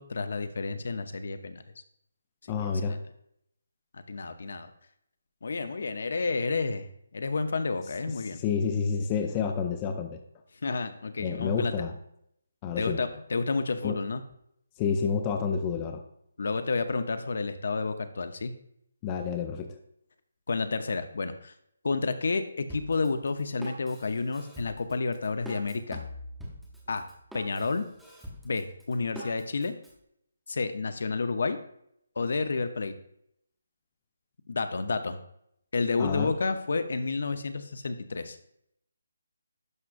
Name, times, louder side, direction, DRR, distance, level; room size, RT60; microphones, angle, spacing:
voice 1, 0.0-1.6 2.6-3.0 4.1-4.7 5.4-6.9 7.1-8.4 10.6-11.7 12.8-14.2 16.4-18.5 20.5-21.5 21.8-26.0 26.9-27.1 27.3-27.9 28.4-29.7 30.5-31.6 32.2-32.9 34.5-35.2 35.7-38.4, left 4 dB, 60° left, 9 dB, 0.7 m, -30 dB
voice 2, 2.5-3.0 8.3-10.2 11.2-11.9 12.6-13.0 13.8-14.0 14.8-16.0 19.0-19.8 36.0-36.3, left 6 dB, 15° left, 5 dB, 0.4 m, -29 dB
Drum kit, 22.7-29.9, equal, ahead, 0.8 m, -43 dB
11.0 x 5.9 x 2.5 m, 0.73 s
hypercardioid pair, 175°, 0 cm